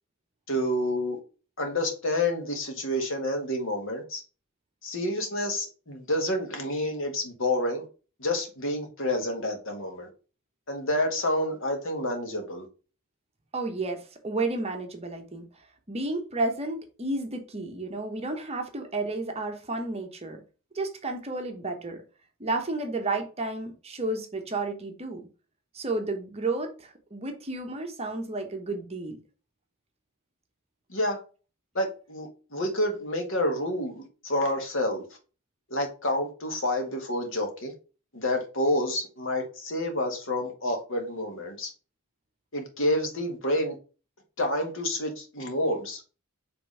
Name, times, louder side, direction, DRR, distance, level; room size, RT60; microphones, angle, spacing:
voice 1, 0.5-1.2 1.6-4.2 4.8-7.9 8.2-10.1 10.7-12.6 30.9-31.2 31.7-35.0 35.7-37.7 38.1-41.7 42.5-43.7 44.4-46.0, left 1 dB, 60° left, 1.7 m, -29 dB
voice 2, 13.5-15.4 15.9-20.4 20.7-22.0 22.4-25.3 25.7-29.2, right 2 dB, 30° right, 1.0 m, -32 dB
5.3 x 3.4 x 5.4 m
head